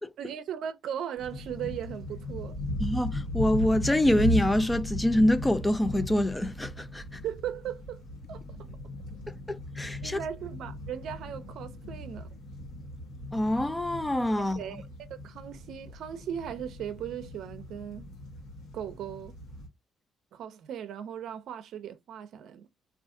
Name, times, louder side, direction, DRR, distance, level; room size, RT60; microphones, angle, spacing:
voice 1, 0.2-2.6 7.2-8.0 8.3-8.4 10.0-12.3 14.4-14.8 15.2-18.1 18.7-19.4 20.3-22.7, right 9 dB, 75° right, 0.5 m, -37 dB
sound 1, 1.2-19.7, left 1 dB, 90° left, 1.0 m, -37 dB
voice 2, 2.8-7.2 9.5-10.2 13.3-14.6, left 1 dB, 15° left, 0.4 m, -25 dB
2.5 x 2.4 x 3.7 m
cardioid pair, 90°, 0 cm